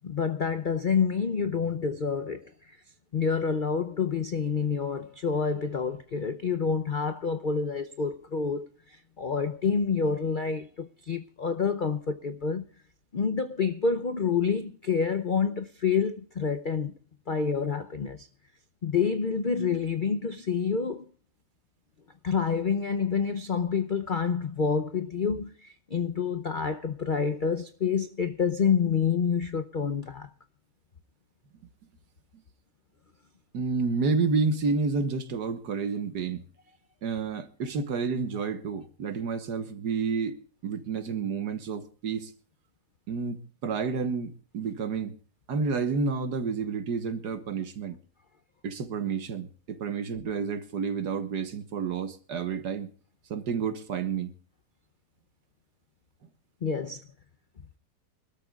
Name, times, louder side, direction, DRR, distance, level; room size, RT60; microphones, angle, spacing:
voice 1, 0.0-2.8 3.1-12.6 13.1-16.9 17.3-18.3 18.8-21.1 22.2-30.3 56.6-57.0, left 6 dB, 60° left, 0.5 m, -28 dB
voice 2, 33.5-36.4 37.0-40.4 40.6-42.3 43.1-45.2 45.5-48.0 48.6-52.9 53.3-54.3, right 5 dB, 70° right, 1.9 m, -30 dB
25.0 x 13.0 x 2.4 m
omnidirectional pair, 1.8 m